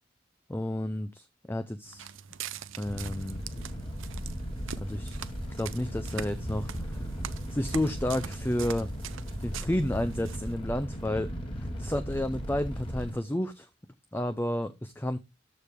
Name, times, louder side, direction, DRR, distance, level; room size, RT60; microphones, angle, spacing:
voice 1, 0.5-2.1 2.8-3.4 4.8-5.2 5.5-7.1 7.5-8.9 9.4-13.7 14.1-15.2, left 1 dB, 10° left, 0.5 m, -31 dB
Walk footsteps, 1.9-10.5, right 8 dB, 90° right, 0.7 m, -43 dB
Fire, 2.8-13.1, equal, 25° left, 2.3 m, -37 dB
13.5 x 4.8 x 3.6 m
head